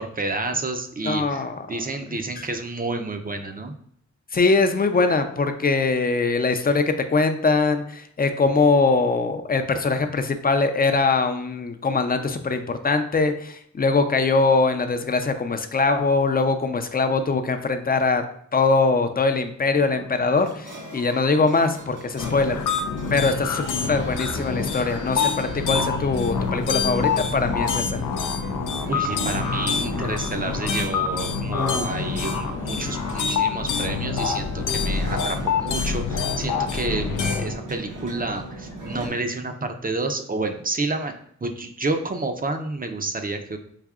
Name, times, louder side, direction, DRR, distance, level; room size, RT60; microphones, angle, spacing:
voice 1, 0.0-1.4 1.7-3.7 28.9-41.1 41.4-43.6, right 2 dB, 30° right, 6 dB, 0.5 m, -29 dB
voice 2, 1.0-1.7 2.4-2.5 4.3-18.2 18.5-22.7 23.1-28.0 31.5-32.0, left 3 dB, 30° left, 7 dB, 0.5 m, -22 dB
sound 1, 19.8-39.1, right 1 dB, 75° right, 1.2 m, -38 dB
sound 2, 22.2-37.5, left 5 dB, 80° left, 0.5 m, -26 dB
4.9 x 2.6 x 2.4 m, 0.67 s
cardioid pair, 45°, 31 cm